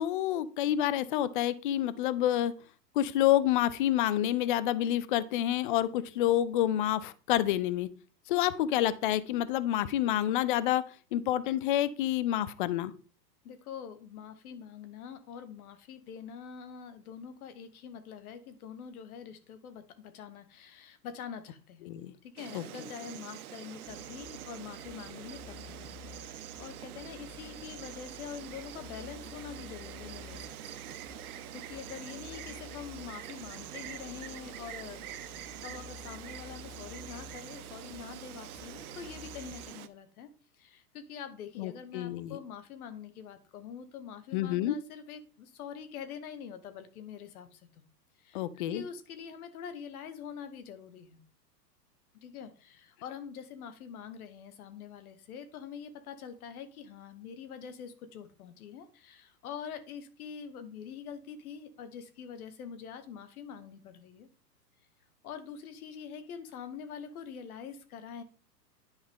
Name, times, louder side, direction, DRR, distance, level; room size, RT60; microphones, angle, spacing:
voice 1, 0.0-2.5 3.0-7.9 8.3-10.8 11.1-12.9 21.9-22.1 22.5-22.6 41.6-42.4 44.3-44.8 48.3-48.8, left 12 dB, 35° left, 16 dB, 0.4 m, -28 dB
voice 2, 13.4-21.9 22.2-25.8 26.3-30.9 31.5-35.4 35.6-40.3 40.6-47.8 48.2-51.2 52.2-64.3 65.2-68.2, left 7 dB, 60° left, 10 dB, 1.4 m, -45 dB
Insect, 22.4-39.9, right 11 dB, 60° right, 0.9 m, -45 dB
sound 1, 23.8-39.7, left 3 dB, 5° right, 1.4 m, -51 dB
10.5 x 4.8 x 3.7 m, 0.38 s
hypercardioid pair, 120°, 50 cm